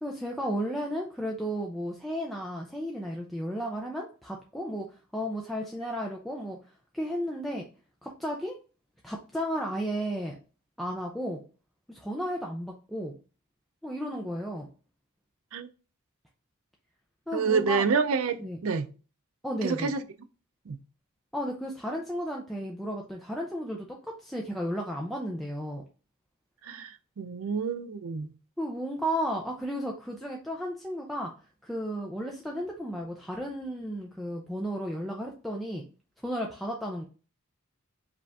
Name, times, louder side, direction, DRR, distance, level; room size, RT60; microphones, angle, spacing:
voice 1, 0.0-4.9 5.1-6.6 6.9-7.6 8.0-8.6 9.0-10.4 10.8-11.4 11.9-13.2 13.8-14.7 17.3-17.9 18.4-18.6 19.4-19.9 21.3-25.8 28.6-31.3 31.6-35.9 36.2-37.0, equal, ahead, 0.5 m, -33 dB
voice 2, 17.3-18.9 19.6-20.0 20.7-20.8 26.6-28.3, right 5 dB, 70° right, 0.5 m, -28 dB
5.0 x 2.5 x 3.4 m
head